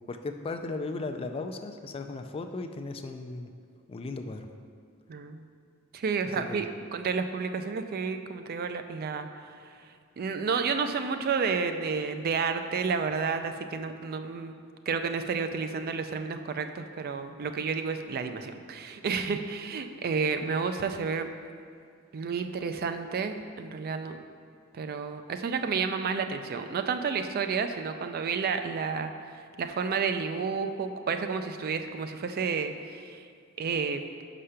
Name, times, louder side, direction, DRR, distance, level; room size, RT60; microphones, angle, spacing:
voice 1, 0.1-3.5 3.9-4.5 6.4-6.7, left 3 dB, 25° left, 6 dB, 0.3 m, -36 dB
voice 2, 5.1-5.4 5.9-6.7 6.9-9.5 10.2-14.5 14.9-21.3 22.1-24.2 24.8-29.1 29.6-33.2 33.6-34.0, right 5 dB, 45° right, 8 dB, 0.4 m, -31 dB
5.6 x 5.0 x 5.6 m, 2.3 s
head